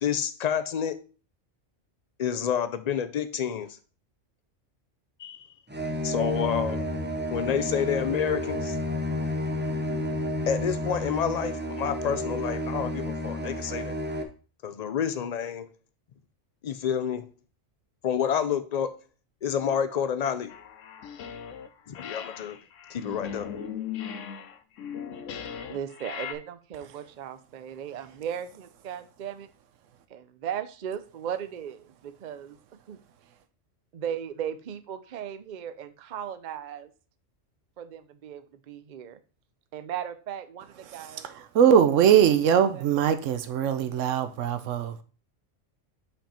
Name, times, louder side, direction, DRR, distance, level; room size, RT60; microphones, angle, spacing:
voice 1, 0.0-1.0 2.2-3.8 5.2-5.5 6.0-6.8 7.3-8.8 10.5-14.0 14.6-15.7 16.6-17.3 18.0-18.9 19.4-20.5 21.9-22.6 22.9-23.5, left 8 dB, 50° left, 0.5 m, -29 dB
sound 1, 5.7-14.2, left 1 dB, 10° right, 0.6 m, -31 dB
sound 2, 5.7-13.1, equal, 30° right, 3.2 m, -44 dB
sound 3, 20.5-21.7 21.9-26.3, left 8 dB, 80° left, 1.0 m, -38 dB
voice 2, 25.7-29.5 30.1-32.6 32.9-33.0 33.9-36.9 37.8-39.2 39.7-40.6 40.9-41.2 42.7-42.9, right 9 dB, 50° right, 0.6 m, -37 dB
voice 3, 41.6-45.0, right 8 dB, 80° right, 1.0 m, -21 dB
5.9 x 5.3 x 4.2 m
omnidirectional pair, 1.3 m